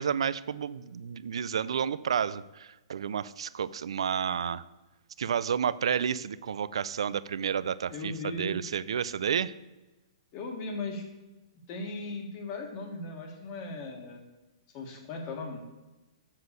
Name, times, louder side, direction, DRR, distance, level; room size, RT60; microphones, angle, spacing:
voice 1, 0.0-4.6 5.2-9.5, right 7 dB, 70° right, 18 dB, 0.4 m, -31 dB
voice 2, 7.9-8.6 10.3-11.0 11.7-14.2 14.7-15.6, left 2 dB, 25° left, 3 dB, 1.4 m, -37 dB
7.4 x 6.1 x 6.5 m, 1.1 s
hypercardioid pair, 175°, 3 cm